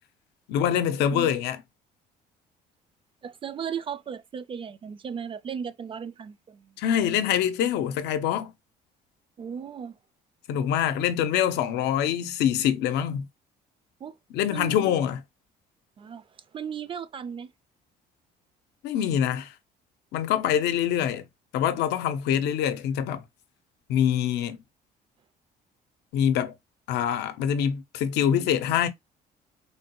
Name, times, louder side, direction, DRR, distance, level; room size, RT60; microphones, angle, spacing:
voice 1, 0.5-1.6 6.8-8.5 10.5-13.3 14.3-15.2 18.8-19.5 20.1-21.3 21.5-23.2 23.9-24.6 26.1-26.5 26.9-28.9, left 9 dB, 85° left, 0.6 m, -25 dB
voice 2, 3.2-6.8 9.4-10.0 14.0-14.2 14.5-15.0 16.0-17.5, right 7 dB, 30° right, 0.4 m, -36 dB
3.3 x 2.2 x 2.9 m
cardioid pair, 110°, 17 cm